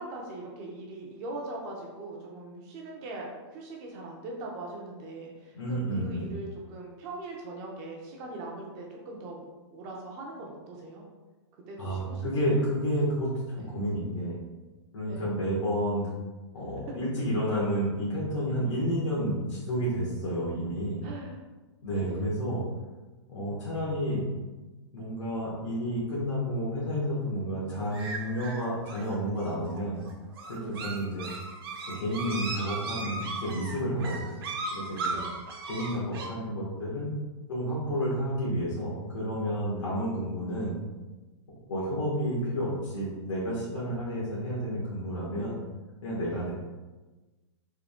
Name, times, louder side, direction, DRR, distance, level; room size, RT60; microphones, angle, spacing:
voice 1, 0.0-3.3 3.5-9.5 9.7-11.0 11.7-12.6 13.5-13.7 15.1-15.2 21.0-21.4 21.9-22.3 30.6-30.8 35.1-35.3 46.3-46.4, right 2 dB, 20° right, -1 dB, 0.5 m, -41 dB
voice 2, 5.5-6.3 11.8-14.4 14.9-16.1 16.5-21.1 21.8-22.6 23.3-24.3 24.9-30.0 30.5-31.3 31.8-34.4 34.7-35.2 35.7-37.1 37.5-40.8 41.7-45.6 46.0-46.5, equal, 85° left, -7 dB, 1.4 m, -30 dB
sound 1, 27.9-36.3, right 3 dB, 50° right, 0.7 m, -37 dB
3.7 x 2.7 x 3.5 m, 1.2 s
hypercardioid pair, 170°, 15 cm